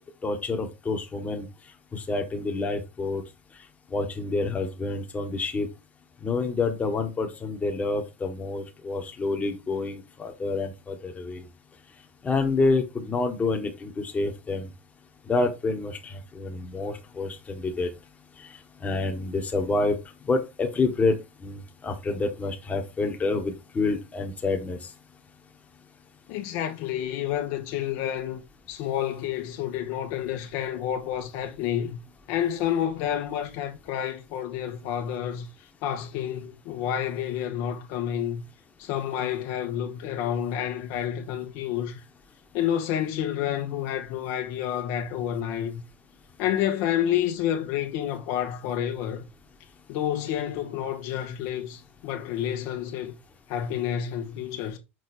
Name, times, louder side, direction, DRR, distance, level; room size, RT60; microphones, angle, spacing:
voice 1, 0.2-1.5 1.9-3.2 3.9-5.7 6.2-11.4 12.2-14.7 15.3-17.9 18.4-18.5 18.8-20.0 20.2-21.2 21.4-24.8, left 3 dB, 20° left, 1.6 m, -28 dB
voice 2, 26.3-32.0 32.3-35.5 35.8-38.4 38.8-42.0 42.5-45.8 46.4-49.2 49.9-53.1 53.5-54.8, left 10 dB, 60° left, 1.4 m, -29 dB
6.4 x 4.4 x 4.4 m
hypercardioid pair, 110°, 7 cm